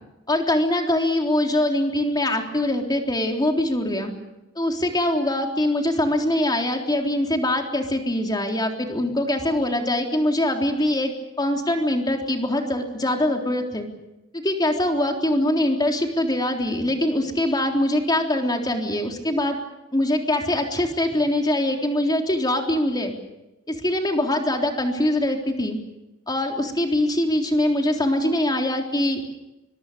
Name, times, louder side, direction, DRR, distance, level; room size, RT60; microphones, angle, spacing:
voice 1, 0.3-4.1 4.6-13.9 14.3-19.6 19.9-23.1 23.7-25.8 26.3-29.4, left 1 dB, 20° left, 3 dB, 3.6 m, -23 dB
25.0 x 23.5 x 6.9 m, 0.95 s
head